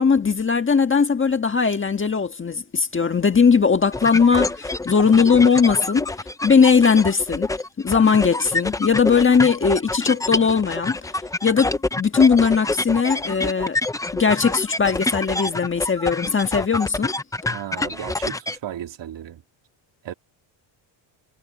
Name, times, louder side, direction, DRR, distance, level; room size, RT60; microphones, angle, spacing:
voice 1, 0.0-6.1 6.4-7.5 7.8-11.0 11.4-13.8 14.1-17.1, left 5 dB, 25° left, 1.6 m, -19 dB
sound 1, 3.9-18.6, left 2 dB, 10° left, 0.4 m, -27 dB
voice 2, 17.5-19.4 20.0-20.1, right 11 dB, 65° right, 3.2 m, -34 dB
cardioid pair, 140°, 47 cm